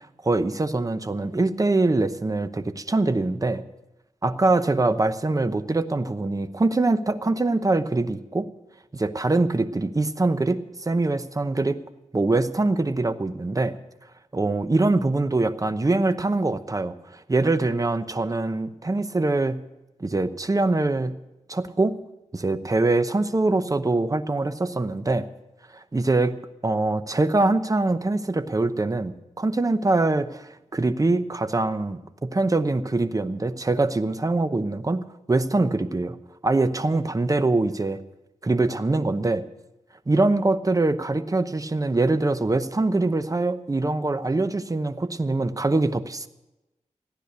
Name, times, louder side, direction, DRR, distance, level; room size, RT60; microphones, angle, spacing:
voice 1, 0.0-3.6 4.2-8.5 8.9-11.8 12.1-13.8 14.3-19.6 20.0-21.2 21.5-22.0 22.3-25.3 25.7-26.4 26.6-36.2 36.4-38.0 38.4-39.4 40.1-46.3, right 2 dB, 25° right, 11 dB, 0.8 m, -23 dB
15.0 x 10.0 x 6.7 m, 0.97 s
wide cardioid pair, 80°, 13 cm